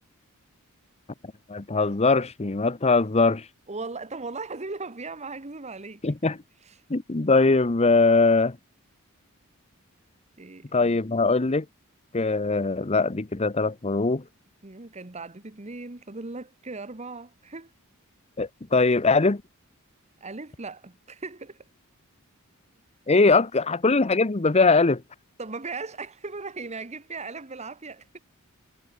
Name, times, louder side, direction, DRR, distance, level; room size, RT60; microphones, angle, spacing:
voice 1, 1.5-3.4 6.0-6.4 6.9-8.6 10.7-11.6 12.1-14.2 18.4-19.4 23.1-25.0, left 3 dB, 30° left, 0.8 m, -21 dB
voice 2, 3.7-6.3 6.6-6.8 10.4-11.0 14.6-17.7 20.2-21.6 25.4-28.2, right 3 dB, 30° right, 1.3 m, -38 dB
head